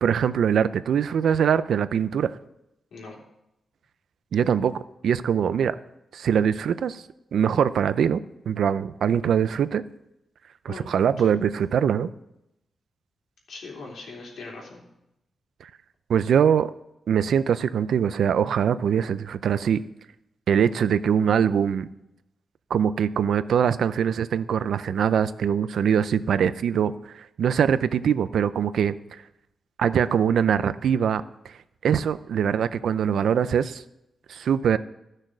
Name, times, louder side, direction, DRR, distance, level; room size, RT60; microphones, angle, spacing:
voice 1, 0.0-2.4 4.3-5.7 6.1-7.0 7.3-9.8 10.6-12.1 15.6-15.7 16.1-16.7 17.1-19.8 20.5-21.9 22.7-28.9 29.8-31.2 31.8-33.8 34.3-34.8, right 8 dB, 75° right, 14 dB, 0.5 m, -23 dB
voice 2, 13.5-14.8, left 3 dB, 90° left, -1 dB, 3.4 m, -40 dB
13.5 x 6.5 x 6.2 m, 0.85 s
wide cardioid pair, 180°, 0 cm